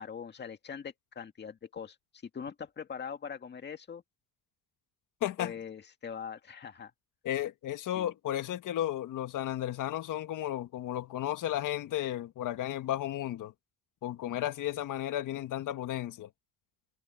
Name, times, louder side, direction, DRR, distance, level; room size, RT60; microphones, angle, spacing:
voice 1, 0.0-4.0 5.4-6.9 8.0-8.1, left 7 dB, 30° left, 2.0 m, -42 dB
voice 2, 5.2-5.5 7.2-13.5 14.0-16.3, left 12 dB, 55° left, 1.7 m, -33 dB
cardioid pair, 140°, 37 cm